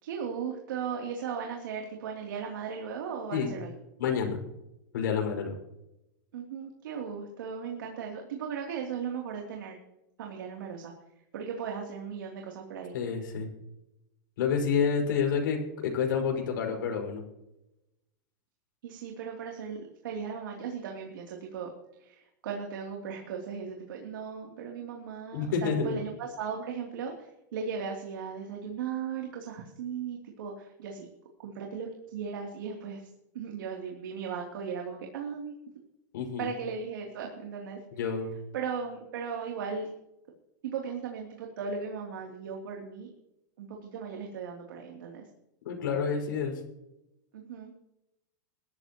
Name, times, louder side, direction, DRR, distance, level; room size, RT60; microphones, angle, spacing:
voice 1, 0.0-3.7 6.3-9.8 10.2-10.9 11.3-12.9 18.8-21.7 22.0-31.1 31.4-33.1 33.3-35.5 36.4-37.8 38.5-39.9 40.6-43.1 43.6-45.3 47.3-47.7, right 6 dB, 80° right, 1 dB, 3.1 m, -37 dB
voice 2, 4.0-4.4 4.9-5.6 12.9-13.5 14.4-17.2 25.3-26.0 36.1-36.5 37.9-38.3 45.6-46.6, left 6 dB, 75° left, 2 dB, 5.8 m, -29 dB
21.5 x 13.5 x 3.0 m, 0.88 s
supercardioid pair, 175°, 11 cm